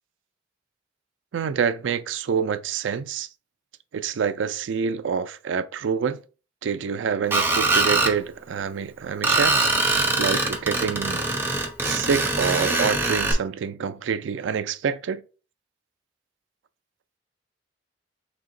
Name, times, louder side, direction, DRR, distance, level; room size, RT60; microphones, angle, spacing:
voice 1, 1.3-3.3 3.9-6.2 6.6-9.7 10.2-11.2 11.9-15.2, right 6 dB, 80° right, 0.4 m, -27 dB
Screech, 7.3-8.1 9.2-13.3, right 2 dB, 10° right, 0.6 m, -23 dB
3.5 x 2.9 x 3.8 m
head